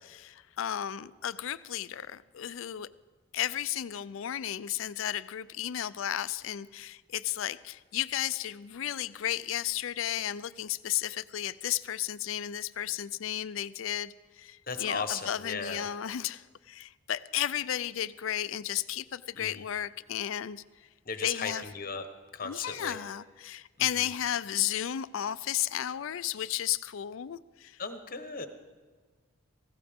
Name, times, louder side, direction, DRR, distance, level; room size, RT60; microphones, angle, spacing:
voice 1, 0.1-2.9 3.3-20.6 21.2-21.6 22.4-27.8, left 11 dB, 70° left, 17 dB, 0.4 m, -33 dB
voice 2, 14.6-15.9 19.3-19.6 21.0-22.1 22.3-23.0 23.8-24.1 27.8-28.5, left 5 dB, 40° left, 8 dB, 1.0 m, -36 dB
17.5 x 15.5 x 3.6 m, 1.4 s
head